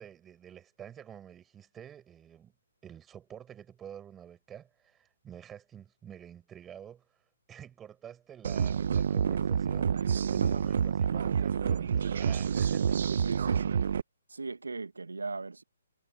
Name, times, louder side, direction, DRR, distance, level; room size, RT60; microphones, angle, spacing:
voice 1, 0.0-2.5 2.8-7.1 7.5-13.1, right 9 dB, 15° right, 6.1 m, -49 dB
sound 1, 8.4-14.0, right 7 dB, 60° right, 0.9 m, -28 dB
voice 2, 13.2-13.8 14.3-15.6, right 3 dB, 85° right, 1.9 m, -38 dB
figure-of-eight pair, 135°, 0 cm